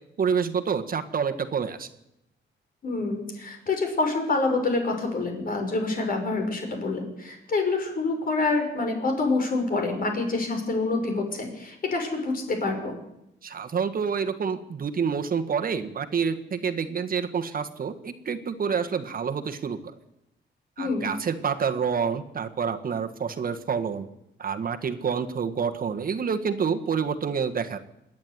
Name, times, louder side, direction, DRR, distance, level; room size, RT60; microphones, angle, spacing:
voice 1, 0.2-1.9 13.4-19.9 20.8-24.1 24.4-27.8, right 6 dB, 45° right, 7 dB, 1.6 m, -28 dB
voice 2, 2.8-13.0 20.8-21.1, left 3 dB, 45° left, 4 dB, 5.5 m, -27 dB
26.5 x 10.5 x 9.7 m, 0.84 s
wide cardioid pair, 140°, 20 cm